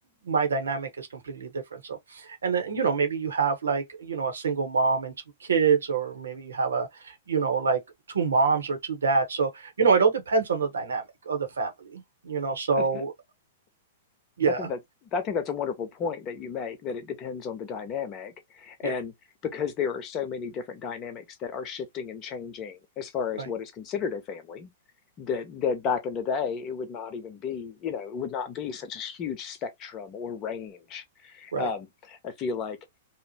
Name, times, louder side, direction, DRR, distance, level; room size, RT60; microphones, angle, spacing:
voice 1, 0.2-5.1 5.5-7.8 8.1-13.1 14.4-14.6 18.8-18.9 23.4-23.5 31.5-31.7, right 5 dB, 75° right, 0.9 m, -26 dB
voice 2, 12.7-13.0 14.6-14.8 15.1-19.1 19.4-24.7 25.2-32.8, left 6 dB, 35° left, 0.8 m, -33 dB
3.0 x 2.0 x 2.6 m
hypercardioid pair, 105°, 0 cm